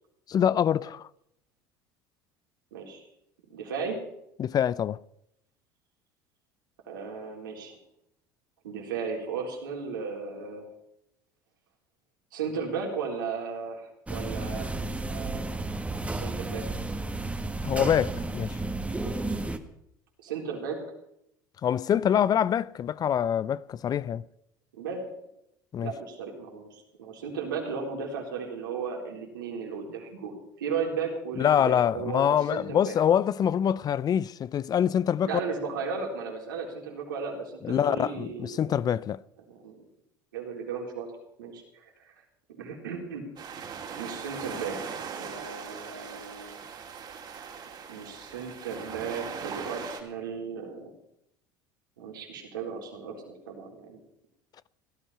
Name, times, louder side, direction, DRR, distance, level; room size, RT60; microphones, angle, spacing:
voice 1, 0.3-1.1 4.4-5.0 17.6-18.6 21.6-24.2 25.7-25.9 31.4-35.4 37.6-39.2, left 9 dB, 35° left, 0.5 m, -25 dB
voice 2, 2.7-3.0 3.5-4.0 6.8-7.8 8.6-10.7 12.3-14.7 15.1-15.5 16.0-16.6 20.2-20.8 24.8-25.0 25.8-32.9 35.2-38.9 39.5-39.8 40.3-41.1 41.4-42.1 42.6-43.3 44.0-46.7 47.9-50.9 52.0-54.0, right 5 dB, 80° right, 4.0 m, -35 dB
sound 1, 14.1-19.6, right 2 dB, 10° right, 1.6 m, -32 dB
sound 2, 43.4-50.0, right 6 dB, 45° right, 3.2 m, -40 dB
17.0 x 13.0 x 5.7 m
hypercardioid pair, 75°, 11 cm